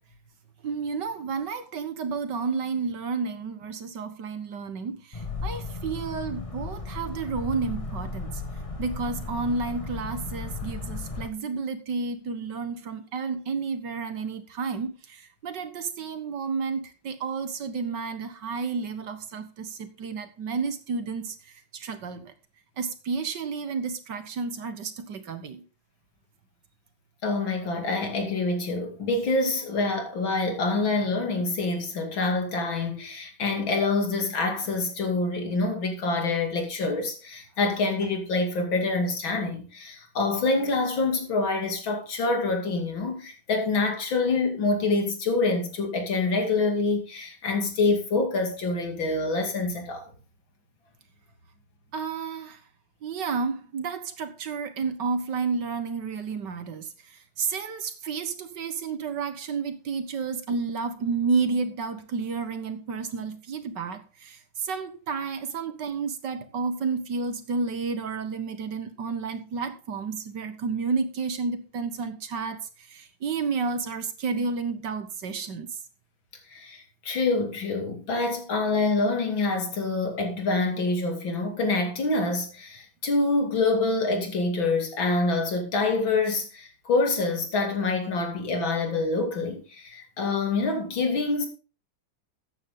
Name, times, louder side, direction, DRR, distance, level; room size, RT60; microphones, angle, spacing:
voice 1, 0.6-8.4 8.8-21.4 21.7-22.3 22.8-25.6 51.9-52.6 53.0-56.9 57.4-75.7, right 4 dB, 65° right, 1.9 m, -31 dB
sound 1, 5.1-11.3, left 3 dB, 20° left, 1.1 m, -35 dB
voice 2, 27.2-50.0 76.5-91.5, left 3 dB, 75° left, 3.2 m, -26 dB
14.0 x 9.1 x 3.8 m
omnidirectional pair, 2.1 m